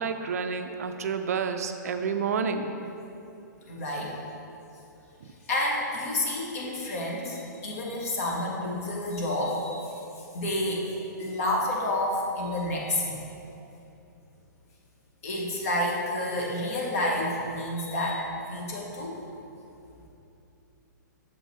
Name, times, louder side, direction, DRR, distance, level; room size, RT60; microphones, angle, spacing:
voice 1, 0.0-2.7, right 5 dB, 50° right, 7 dB, 0.4 m, -29 dB
voice 2, 3.7-4.1 5.5-9.9 10.3-13.1 15.2-19.1, left 1 dB, 45° left, -2 dB, 1.4 m, -29 dB
6.8 x 5.5 x 4.3 m, 2.8 s
figure-of-eight pair, 115°, 10 cm